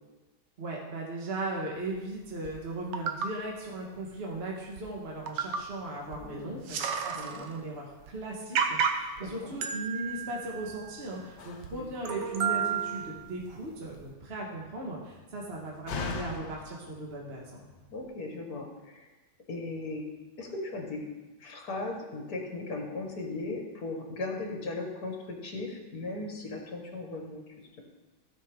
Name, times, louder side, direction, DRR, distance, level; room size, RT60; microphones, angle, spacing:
voice 1, 0.6-17.6, right 2 dB, 40° right, -2 dB, 1.6 m, -38 dB
sound 1, 2.4-2.5 2.9-3.3 4.3-4.4 4.8-4.9 5.3-5.7 6.1-6.2 6.5-7.5 8.0-8.1 8.5-9.2 9.6-11.2 11.6-11.7 12.0-13.4 14.0-14.1, right 7 dB, 85° right, 1.5 m, -31 dB
voice 2, 6.1-6.8 7.1-7.5 9.2-9.6 11.7-11.9 17.9-19.1 19.5-20.1 20.4-21.0 21.4-27.4, left 2 dB, 60° left, 0 dB, 2.2 m, -37 dB
Slam, 10.4-18.1, left 4 dB, 80° left, 1.6 m, -44 dB
16.5 x 6.0 x 3.7 m, 1.1 s
omnidirectional pair, 1.8 m